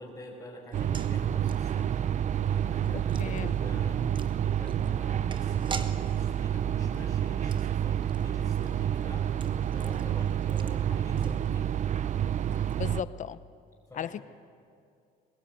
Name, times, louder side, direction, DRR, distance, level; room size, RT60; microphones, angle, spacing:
voice 1, 0.0-1.9 2.5-4.0 4.4-9.3 9.7-11.7 13.9-14.2, left 1 dB, 10° left, -7 dB, 5.2 m, -47 dB
sound 1, 0.7-11.9 12.2-12.3 12.5-12.7, right 5 dB, 30° right, 1.2 m, -46 dB
sound 2, 0.7-13.0, right 9 dB, 45° right, 0.6 m, -29 dB
voice 2, 3.2-3.6 12.8-13.4 13.9-14.2, left 9 dB, 50° left, 15 dB, 0.8 m, -35 dB
21.5 x 20.0 x 9.3 m, 2.4 s
cardioid pair, 110°, 17 cm